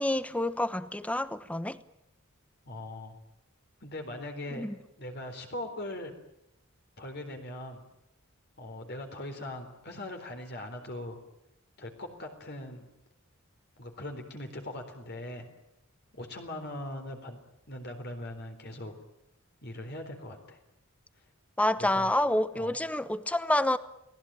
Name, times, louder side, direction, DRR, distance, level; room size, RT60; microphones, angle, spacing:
voice 1, 0.0-1.8 4.5-4.7 21.6-23.8, left 1 dB, 5° left, 1.0 m, -28 dB
voice 2, 2.7-3.2 3.8-4.6 5.0-6.1 7.0-7.8 8.6-11.2 11.8-12.8 13.8-15.5 16.1-17.4 17.7-18.9 19.6-20.6 21.8-22.1 22.5-22.7, left 1 dB, 50° left, 4.0 m, -40 dB
30.0 x 19.5 x 9.0 m
head